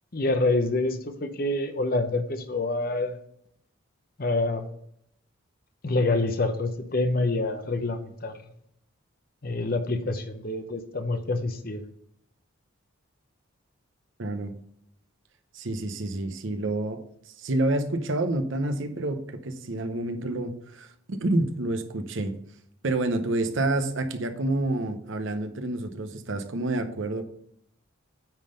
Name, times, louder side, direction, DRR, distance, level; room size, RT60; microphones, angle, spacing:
voice 1, 0.1-3.2 4.2-4.7 5.8-8.3 9.4-11.8, left 2 dB, 45° left, 7 dB, 0.7 m, -27 dB
voice 2, 14.2-14.5 15.5-17.0 17.4-22.3 22.8-27.2, right 2 dB, 65° right, 8 dB, 0.8 m, -28 dB
9.0 x 3.8 x 5.1 m, 0.71 s
head